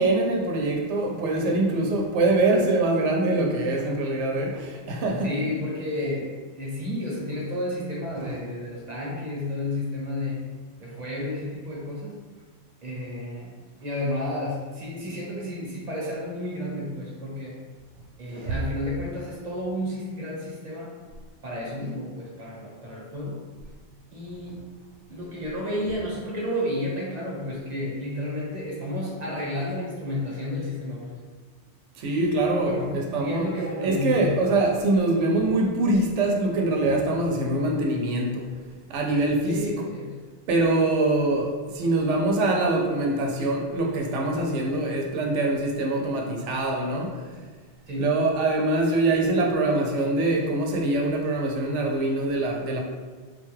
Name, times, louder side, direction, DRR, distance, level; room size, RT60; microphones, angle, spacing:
voice 1, 0.0-5.3 8.2-8.3 18.3-18.6 32.0-33.5 33.8-38.5 38.9-39.6 40.5-47.3 48.0-52.8, right 2 dB, 90° right, 0 dB, 0.9 m, -24 dB
voice 2, 5.2-10.5 10.8-12.2 12.8-17.6 18.2-20.9 21.4-23.4 24.1-24.6 25.1-31.2 32.6-34.3 39.5-40.2 47.9-48.2, left 1 dB, 40° right, -4 dB, 0.9 m, -31 dB
3.8 x 2.2 x 3.1 m, 1.4 s
omnidirectional pair, 1.2 m